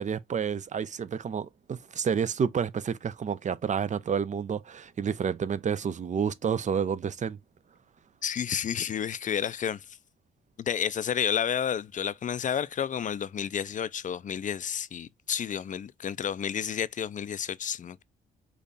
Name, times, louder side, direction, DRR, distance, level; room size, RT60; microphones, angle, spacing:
voice 1, 0.0-7.4, right 7 dB, 40° right, 0.5 m, -29 dB
voice 2, 8.2-9.9 10.6-18.0, left 8 dB, 40° left, 0.5 m, -31 dB
5.2 x 2.4 x 4.0 m
cardioid pair, 90°, 20 cm